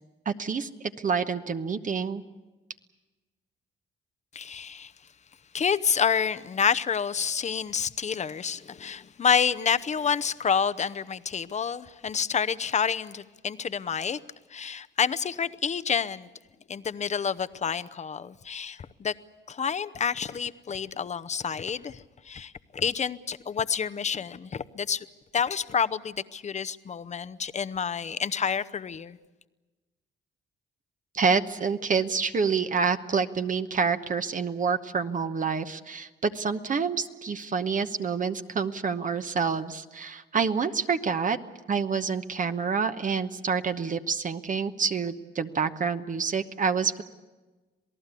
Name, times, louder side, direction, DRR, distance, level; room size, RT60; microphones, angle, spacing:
voice 1, 0.2-0.7 1.0-2.2 31.1-41.4 41.7-47.0, right 5 dB, 40° right, 1.0 m, -27 dB
voice 2, 4.3-4.9 5.5-14.2 14.5-16.3 16.7-19.1 19.5-25.1 25.3-29.2, left 6 dB, 35° left, 0.8 m, -28 dB
27.5 x 18.0 x 8.3 m
cardioid pair, 90°, 20 cm